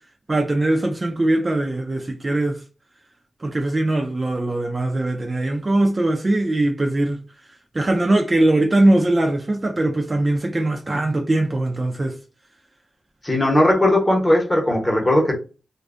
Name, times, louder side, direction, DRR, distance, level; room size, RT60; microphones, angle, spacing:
voice 1, 0.3-2.6 3.4-7.2 7.7-12.2, right 1 dB, 30° right, 0.3 m, -21 dB
voice 2, 13.2-15.3, left 1 dB, 20° left, 0.8 m, -18 dB
2.5 x 2.2 x 2.4 m
wide cardioid pair, 110°, 0 cm